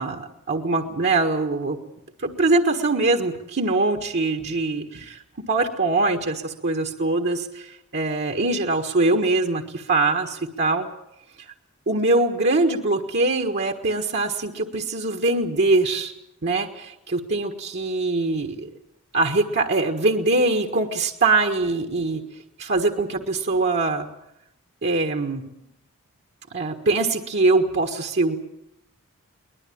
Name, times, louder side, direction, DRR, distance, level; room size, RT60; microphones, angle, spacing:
voice 1, 0.0-1.8 2.2-5.2 5.5-10.9 11.4-11.5 11.9-16.1 16.4-18.7 19.1-22.2 22.6-24.1 24.8-25.4 26.5-28.4, right 2 dB, 50° right, 4 dB, 1.6 m, -23 dB
23.0 x 20.0 x 8.7 m, 0.81 s
head